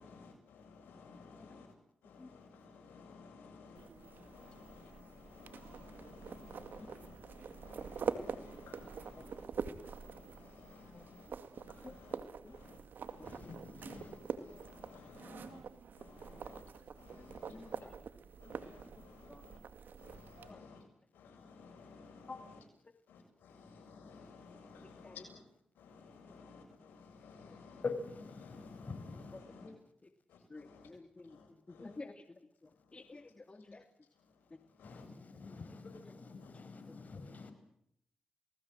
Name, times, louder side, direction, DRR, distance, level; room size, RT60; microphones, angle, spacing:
voice 1, 0.0-1.7 2.0-9.5 9.8-12.2 12.4-13.5 13.8-15.6 16.0-16.6 16.9-17.9 18.4-19.6 20.0-20.8 21.1-22.3 23.1-25.4 25.8-27.8 28.4-29.7 30.3-30.9 31.3-32.0 34.8-35.1 36.4-36.5, left 4 dB, 90° left, 7.3 m, -56 dB
sound 1, 3.7-20.5, right 6 dB, 75° right, 2.1 m, -45 dB
voice 2, 13.2-14.2 27.8-29.4 34.8-37.5, left 4 dB, 55° left, 5.8 m, -45 dB
voice 3, 15.2-15.7 16.3-16.5 17.1-18.0 18.4-18.9 19.2-19.5 20.5-20.7 22.3-22.4 22.8-22.9 24.8-25.3 26.4-26.5 27.5-27.6 29.3-30.1 30.5-33.9 34.5-34.6 34.9-35.0 35.4-35.8 36.0-36.1 36.9-37.0, left 3 dB, 35° left, 2.4 m, -53 dB
29.0 x 19.0 x 7.7 m
supercardioid pair, 50°, 3 cm